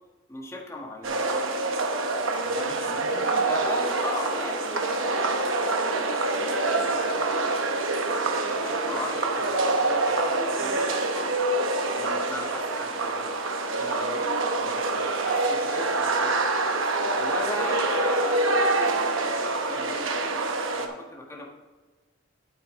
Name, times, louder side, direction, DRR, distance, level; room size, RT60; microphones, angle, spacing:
voice 1, 0.3-1.2 3.4-6.0 6.5-7.4 8.5-11.3 11.9-13.4 13.8-14.3 14.6-16.4 17.1-20.1 20.8-21.4, left 2 dB, 15° left, -2 dB, 1.5 m, -38 dB
sound 1, 1.0-20.9, right 2 dB, 80° right, 1.0 m, -26 dB
voice 2, 2.4-3.4, left 2 dB, 75° left, 4 dB, 1.1 m, -39 dB
8.8 x 8.4 x 3.7 m, 1.3 s
head